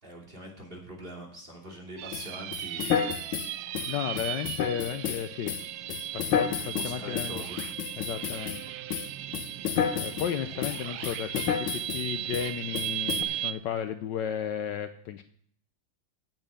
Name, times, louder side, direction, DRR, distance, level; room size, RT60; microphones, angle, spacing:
voice 1, 0.0-3.1 6.4-7.6, equal, 25° right, -1 dB, 2.9 m, -43 dB
sound 1, 2.0-13.5, right 13 dB, 90° right, 1.4 m, -37 dB
sound 2, 2.1-8.6 8.9-10.3 10.6-12.1 12.3-12.5 12.7-13.2, left 8 dB, 90° left, 1.7 m, -31 dB
voice 2, 3.9-5.5 6.1-7.3 8.0-8.6 9.9-15.2, left 9 dB, 70° left, 10 dB, 1.2 m, -34 dB
8.8 x 8.5 x 7.0 m, 0.63 s
omnidirectional pair, 2.2 m